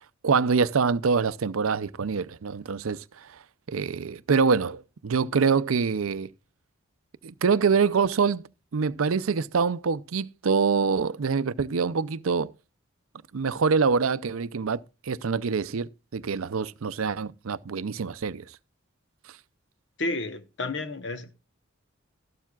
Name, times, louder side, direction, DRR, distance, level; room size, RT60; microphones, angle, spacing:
voice 1, 0.2-3.4 3.7-6.3 7.2-12.5 13.3-18.4, right 5 dB, 85° right, 0.5 m, -25 dB
voice 2, 20.0-21.3, left 2 dB, 55° left, 1.1 m, -31 dB
13.5 x 12.0 x 2.3 m
head